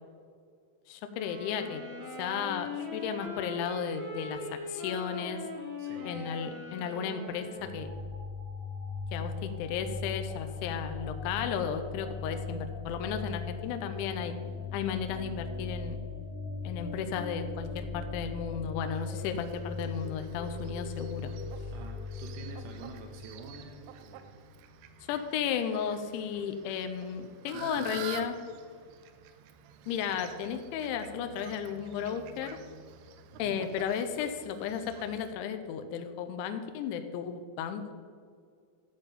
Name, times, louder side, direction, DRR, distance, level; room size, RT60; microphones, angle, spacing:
voice 1, 0.9-1.8 2.2-5.4 6.0-7.9 9.1-14.3 14.7-16.0 16.6-21.3 25.1-28.4 29.9-32.6 33.4-37.9, left 7 dB, 80° left, 7 dB, 2.9 m, -34 dB
sound 1, 1.1-7.9, left 3 dB, 50° right, 1.4 m, -40 dB
voice 2, 5.8-6.3 21.7-24.4 27.5-28.1 33.3-33.7, right 4 dB, 75° right, 3 dB, 2.8 m, -47 dB
sound 2, 7.6-23.9, left 4 dB, 45° left, 2.0 m, -39 dB
Fowl, 18.9-35.3, right 8 dB, 90° right, 3.3 m, -49 dB
13.5 x 7.1 x 5.3 m, 2.1 s
omnidirectional pair, 5.7 m